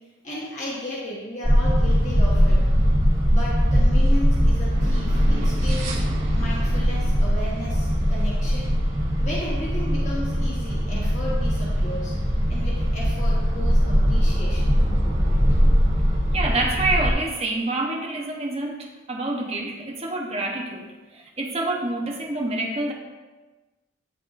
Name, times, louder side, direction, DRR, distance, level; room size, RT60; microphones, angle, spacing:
voice 1, 0.2-2.6 3.3-6.0 6.3-8.7 9.2-12.1 12.5-14.8, left 1 dB, 40° left, -6 dB, 1.0 m, -34 dB
sound 1, 1.4-17.1, equal, 80° right, 1.9 m, -21 dB
voice 2, 16.3-22.9, right 2 dB, 30° right, 0 dB, 0.8 m, -27 dB
10.5 x 3.6 x 2.5 m, 1.2 s
head